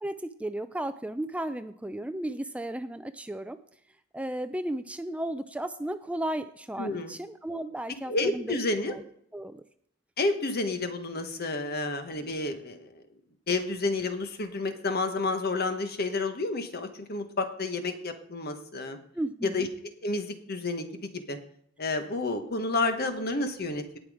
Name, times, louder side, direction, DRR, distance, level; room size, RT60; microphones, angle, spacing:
voice 1, 0.0-3.6 4.1-8.6 8.9-9.0 9.3-9.6 19.1-19.7, right 1 dB, 5° right, 11 dB, 0.4 m, -34 dB
voice 2, 6.8-7.1 8.1-9.0 10.2-13.0 13.5-19.0 19.4-19.7 20.0-21.4 21.8-24.0, left 3 dB, 50° left, 7 dB, 1.4 m, -30 dB
18.0 x 6.1 x 4.9 m, 0.67 s
head